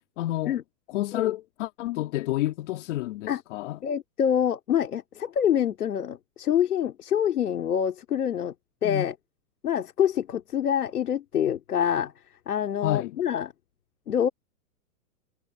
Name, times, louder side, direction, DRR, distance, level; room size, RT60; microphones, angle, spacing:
voice 1, 0.2-0.6 0.9-3.8 8.8-9.1 12.8-13.1, left 15 dB, 55° left, 2.0 m, -29 dB
voice 2, 3.8-8.5 8.8-9.1 9.6-12.1 12.5-13.5 14.1-14.3, left 9 dB, 85° left, 3.4 m, -26 dB
hypercardioid pair, 140°, 44 cm